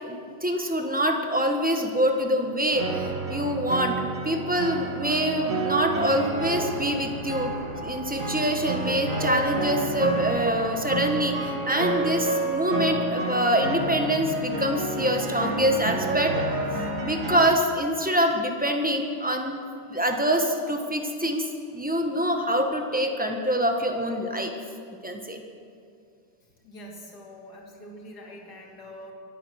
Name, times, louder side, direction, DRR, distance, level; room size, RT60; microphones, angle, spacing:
voice 1, 0.0-7.5 7.8-16.3 17.0-19.6 19.9-21.4 21.7-24.5 25.0-25.4, equal, 5° right, 3 dB, 0.6 m, -25 dB
sound 1, 2.7-17.4, right 2 dB, 35° right, 2.3 m, -29 dB
voice 2, 26.6-29.1, equal, 45° left, -2 dB, 3.0 m, -44 dB
25.0 x 9.0 x 6.4 m, 2.4 s
omnidirectional pair, 2.4 m